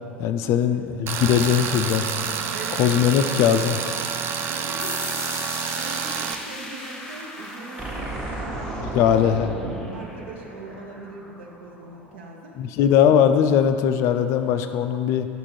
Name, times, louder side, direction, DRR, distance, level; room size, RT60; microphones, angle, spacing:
voice 1, 0.2-2.1 2.8-3.8 8.8-9.5 12.6-15.3, left 9 dB, 45° left, 9 dB, 0.3 m, -20 dB
Tools, 1.1-6.3, right 6 dB, 40° right, 0.4 m, -28 dB
voice 2, 2.5-3.6 4.5-9.1 9.9-12.6, right 3 dB, 65° right, -1 dB, 0.9 m, -41 dB
sound 1, 4.8-12.2, left 1 dB, 10° left, 0.9 m, -39 dB
sound 2, 7.8-11.1, right 2 dB, 20° right, 1.0 m, -33 dB
5.8 x 3.6 x 6.0 m, 2.5 s
figure-of-eight pair, 75°, 6 cm